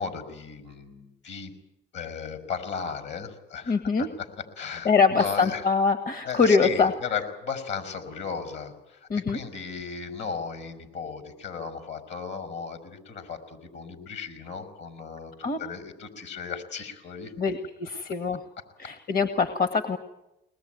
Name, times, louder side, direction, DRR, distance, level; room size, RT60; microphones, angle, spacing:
voice 1, 0.0-1.5 1.9-4.3 4.6-5.6 6.2-17.3, left 6 dB, 65° left, 10 dB, 5.7 m, -36 dB
voice 2, 3.7-4.1 4.8-6.9 9.1-9.4 15.4-15.6 17.4-18.4 18.8-20.0, left 5 dB, 50° left, 9 dB, 1.6 m, -23 dB
23.0 x 20.0 x 9.4 m, 0.93 s
cardioid pair, 90°, 20 cm